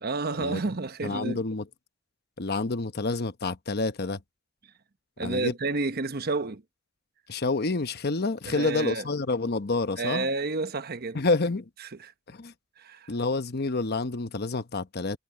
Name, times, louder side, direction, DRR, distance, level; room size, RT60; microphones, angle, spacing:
voice 1, 0.0-1.4 5.2-6.6 8.5-9.0 10.0-11.2 12.0-12.1 12.8-13.1, right 3 dB, 50° right, 1.0 m, -30 dB
voice 2, 1.0-1.7 2.4-4.2 5.2-5.5 7.3-10.3 11.1-11.7 12.3-12.5 13.1-15.2, left 3 dB, 50° left, 1.0 m, -28 dB
head